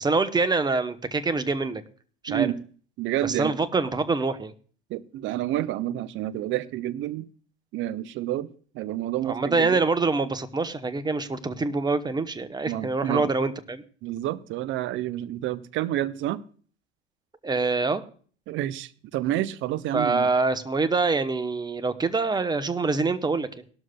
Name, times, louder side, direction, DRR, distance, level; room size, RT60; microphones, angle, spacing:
voice 1, 0.0-1.8 2.2-2.5 3.2-4.5 9.2-13.8 17.4-18.0 19.9-23.5, right 3 dB, 15° right, 11 dB, 1.0 m, -25 dB
voice 2, 2.3-2.6 3.0-3.6 4.9-7.3 7.7-8.5 8.7-9.8 12.7-13.3 14.0-16.4 18.5-20.3, right 13 dB, 40° right, 15 dB, 0.8 m, -29 dB
18.0 x 12.5 x 2.3 m, 0.44 s
figure-of-eight pair, 75°, 32 cm